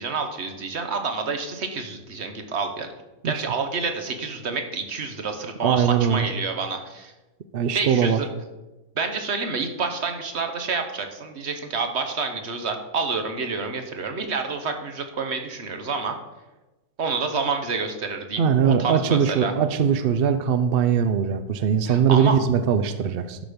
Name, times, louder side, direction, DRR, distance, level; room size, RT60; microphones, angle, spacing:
voice 1, 0.0-2.9 3.2-7.1 7.7-8.3 8.9-16.2 17.0-19.5 21.9-22.3, right 4 dB, 50° right, 6 dB, 1.3 m, -28 dB
voice 2, 5.6-6.3 7.5-8.2 18.4-23.4, right 7 dB, 65° right, 10 dB, 0.5 m, -21 dB
11.5 x 6.2 x 5.1 m, 1.1 s
omnidirectional pair, 1.6 m